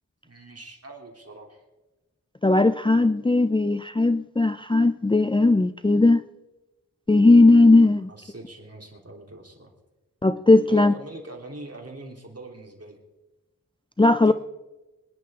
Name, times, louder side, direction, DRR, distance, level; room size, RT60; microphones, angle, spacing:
voice 1, 0.2-1.6 7.8-9.7 10.7-13.0 14.2-14.3, right 2 dB, 45° right, 3.3 m, -43 dB
voice 2, 2.4-6.2 7.1-8.1 10.2-10.9 14.0-14.3, left 2 dB, 15° left, 0.5 m, -17 dB
25.5 x 10.5 x 3.7 m
wide cardioid pair, 50°, 33 cm